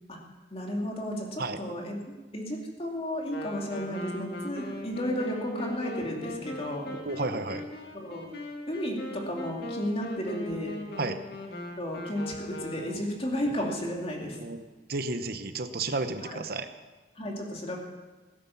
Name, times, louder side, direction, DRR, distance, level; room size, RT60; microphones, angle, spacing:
voice 1, 0.5-2.0 2.3-6.9 7.9-8.3 8.7-10.7 11.8-14.4 16.2-16.4 17.2-17.8, equal, 35° left, 0 dB, 2.5 m, -33 dB
Wind instrument woodwind instrument, 3.3-13.2, left 1 dB, 60° left, 2.1 m, -39 dB
voice 2, 6.9-7.7 11.0-11.2 14.3-14.6 14.9-16.7, right 3 dB, 55° right, 9 dB, 0.9 m, -32 dB
17.0 x 10.0 x 7.1 m, 1.3 s
head